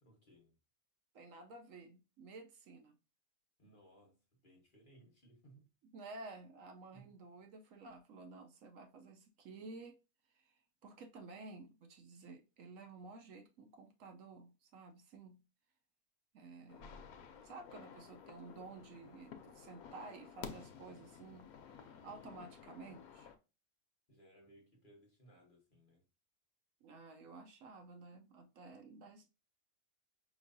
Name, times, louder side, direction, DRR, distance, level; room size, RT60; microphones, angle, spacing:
voice 1, 0.0-0.6 3.6-5.7 6.9-7.2 16.7-17.3 24.1-26.1, right 1 dB, 40° left, 1.2 m, -64 dB
voice 2, 1.1-3.0 5.9-10.0 10.3-15.4 16.3-17.0 17.4-23.3 26.8-29.3, right 3 dB, 70° right, 1.0 m, -53 dB
sound 1, 16.7-23.4, left 7 dB, 85° left, 1.1 m, -53 dB
5.1 x 3.0 x 2.6 m
omnidirectional pair, 1.5 m